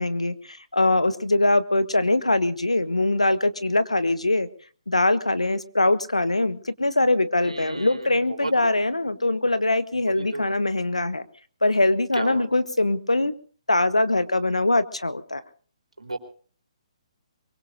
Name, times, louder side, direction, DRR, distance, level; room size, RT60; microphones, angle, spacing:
voice 1, 0.0-4.5 4.9-11.2 11.6-13.3 13.7-15.4, left 2 dB, 90° left, 13 dB, 1.3 m, -22 dB
voice 2, 7.4-8.5 10.1-10.5 12.1-12.5 16.0-16.2, right 2 dB, 85° right, 5 dB, 3.9 m, -34 dB
23.5 x 22.5 x 2.6 m, 0.42 s
figure-of-eight pair, 135°, 3 cm